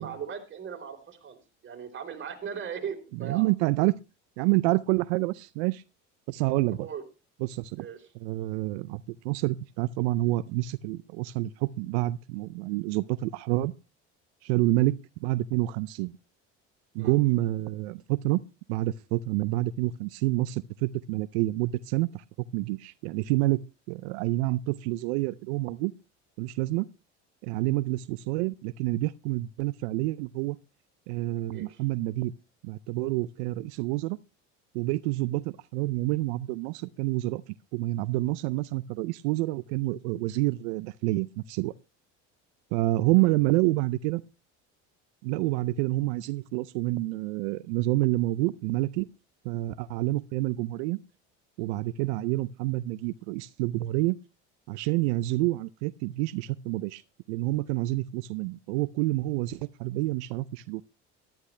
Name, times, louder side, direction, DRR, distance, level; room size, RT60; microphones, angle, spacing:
voice 1, 0.0-1.4 1.6-3.5 6.8-7.0 7.8-8.1 17.0-17.2 31.5-31.8 43.2-43.4, right 7 dB, 35° right, 4.0 m, -38 dB
voice 2, 3.1-3.9 4.4-5.8 6.3-6.9 7.4-7.9 8.2-13.7 14.4-16.1 16.9-18.4 18.7-22.2 22.5-23.6 23.9-25.9 26.4-26.9 27.4-30.6 31.1-32.3 32.6-34.2 34.7-41.7 42.7-44.2 45.2-49.1 49.4-51.0 51.6-54.2 54.7-57.0 57.3-60.8, right 18 dB, 85° right, 0.5 m, -28 dB
14.5 x 12.0 x 3.2 m
supercardioid pair, 95°, 33 cm